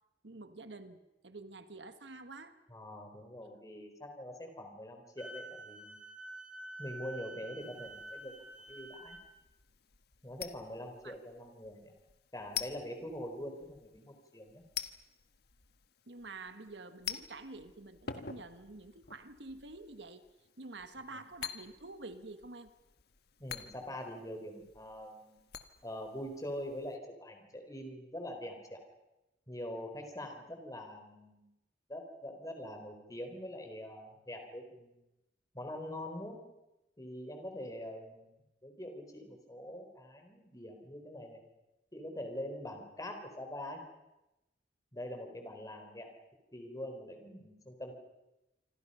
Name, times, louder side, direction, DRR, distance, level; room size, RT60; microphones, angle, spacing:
voice 1, 0.2-2.6 11.0-11.1 16.1-20.2 20.6-22.7, right 3 dB, 75° right, 9 dB, 1.6 m, -48 dB
voice 2, 2.7-6.0 6.8-9.2 10.2-11.9 12.3-14.6 21.1-21.2 23.4-25.4 25.8-28.8 29.5-31.5 31.9-34.9 35.5-36.4 37.0-38.4 38.6-41.4 41.9-43.8 44.9-46.1 46.5-47.9, left 1 dB, 20° left, 5 dB, 4.2 m, -44 dB
Wind instrument woodwind instrument, 5.2-9.2, right 1 dB, 5° right, 3.3 m, -48 dB
sound 1, 7.6-27.0, left 8 dB, 65° left, 1.4 m, -48 dB
27.0 x 26.0 x 5.7 m, 0.96 s
head